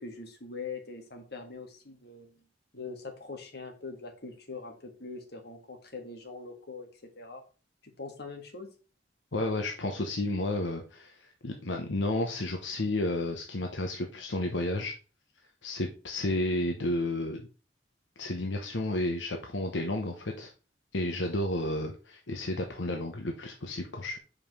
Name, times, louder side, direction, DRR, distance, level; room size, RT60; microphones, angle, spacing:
voice 1, 0.0-2.4 2.7-6.9 7.2-7.4 8.0-8.7, left 4 dB, 60° left, 3 dB, 1.8 m, -42 dB
voice 2, 9.3-14.9 15.6-17.5 18.2-20.5 20.9-24.2, left 1 dB, 80° left, 3 dB, 1.0 m, -32 dB
5.5 x 5.0 x 5.4 m, 0.35 s
head